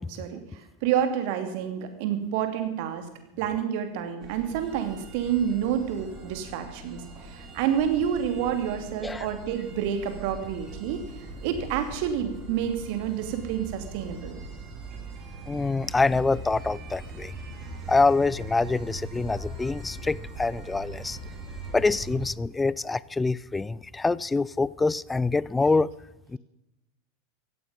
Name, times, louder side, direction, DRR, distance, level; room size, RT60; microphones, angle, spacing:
voice 1, 0.1-3.0 3.4-11.0 11.4-14.3, right 9 dB, 55° right, 2.8 m, -29 dB
sound 1, 4.2-22.3, right 3 dB, 35° right, 5.1 m, -41 dB
voice 2, 15.5-17.3 17.9-21.2 21.7-25.9 26.3-26.4, left 3 dB, 10° left, 0.5 m, -25 dB
17.0 x 15.0 x 5.4 m
figure-of-eight pair, 85°, 0 cm